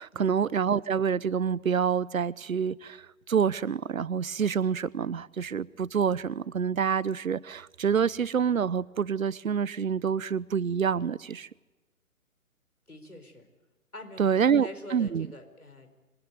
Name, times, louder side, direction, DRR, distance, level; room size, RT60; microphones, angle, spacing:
voice 1, 0.0-11.5 14.2-15.3, right 7 dB, 70° right, 0.9 m, -27 dB
voice 2, 12.9-13.5 13.9-15.9, left 1 dB, 90° left, 4.9 m, -45 dB
26.5 x 20.0 x 9.5 m
figure-of-eight pair, 130°, 43 cm